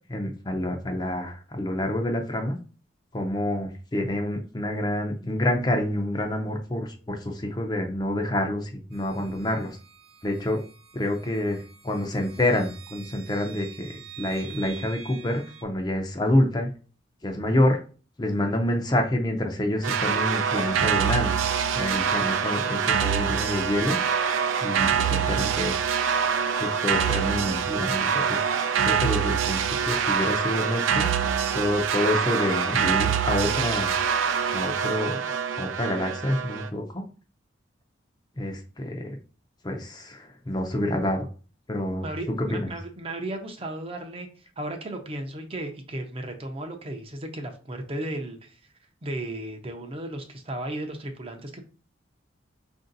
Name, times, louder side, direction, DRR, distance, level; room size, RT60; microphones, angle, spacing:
voice 1, 0.1-2.6 3.1-9.8 10.2-10.6 10.9-16.7 17.2-17.8 18.2-21.4 21.7-25.9 26.6-31.1 31.5-34.0 34.5-35.2 35.6-37.0 38.4-39.1 39.6-41.3 41.7-42.1 42.5-42.7, left 1 dB, 20° left, 3 dB, 0.5 m, -27 dB
sound 1, 8.9-15.6, right 9 dB, 50° right, 1.1 m, -47 dB
sound 2, 19.8-36.7, right 7 dB, 90° right, 0.4 m, -25 dB
voice 2, 42.0-48.6 49.0-51.6, right 1 dB, 30° right, 4 dB, 0.6 m, -35 dB
4.9 x 2.6 x 3.9 m, 0.38 s
head